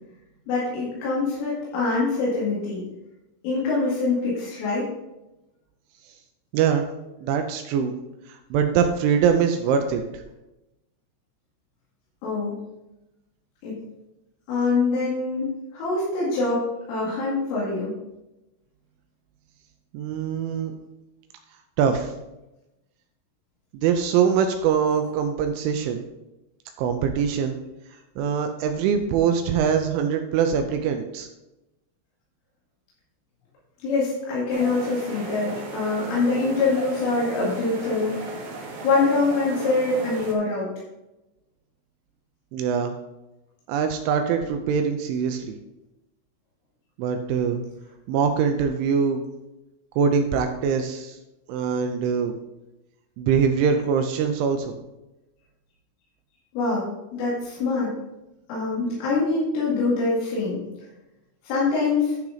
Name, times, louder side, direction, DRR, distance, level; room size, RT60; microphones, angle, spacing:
voice 1, 0.5-2.8 3.4-4.9 12.2-12.6 13.6-13.8 14.5-15.5 15.7-17.9 33.8-38.2 38.8-40.7 56.5-57.9 58.5-60.6 61.4-62.2, left 3 dB, 75° left, -7 dB, 4.7 m, -24 dB
voice 2, 7.2-7.9 8.3-10.0 19.9-20.7 21.8-22.1 23.7-26.0 26.8-27.6 28.2-31.3 42.5-42.9 43.7-45.6 47.0-47.6 48.1-49.2 50.0-51.2 51.5-52.3 53.2-54.7, right 7 dB, 80° right, 6 dB, 2.9 m, -23 dB
sound 1, 34.5-40.3, right 2 dB, 65° right, 2.8 m, -36 dB
11.5 x 5.9 x 4.0 m, 0.97 s
omnidirectional pair, 5.8 m